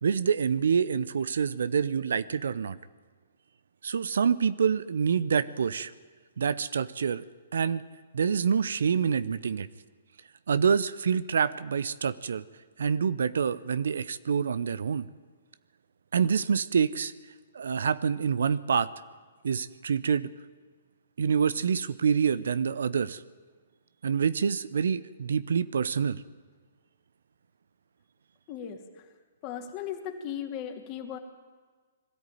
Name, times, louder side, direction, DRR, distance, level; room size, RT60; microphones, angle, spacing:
voice 1, 0.0-2.8 3.8-5.9 6.4-7.3 7.5-7.8 8.1-9.7 10.5-12.4 12.8-15.1 16.1-17.1 17.5-18.9 19.4-20.3 21.2-23.2 24.0-26.2, right 6 dB, 70° right, 16 dB, 0.7 m, -26 dB
voice 2, 28.5-29.1 29.4-31.2, left 9 dB, 35° left, 4 dB, 2.8 m, -37 dB
21.0 x 13.5 x 9.3 m, 1.5 s
figure-of-eight pair, 120°, 0 cm